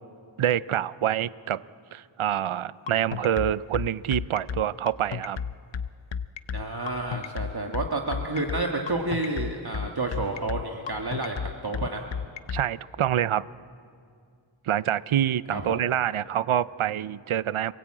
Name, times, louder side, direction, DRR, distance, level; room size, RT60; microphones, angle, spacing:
voice 1, 0.4-1.6 1.9-5.4 12.5-13.4 14.7-17.7, right 10 dB, 75° right, 18 dB, 0.6 m, -26 dB
sound 1, 2.9-12.6, left 7 dB, 65° left, 0.8 m, -32 dB
voice 2, 6.5-11.4 11.6-12.0 15.5-15.8, right 2 dB, 50° right, 1 dB, 1.6 m, -30 dB
26.5 x 17.5 x 8.7 m, 2.3 s
wide cardioid pair, 50°, 49 cm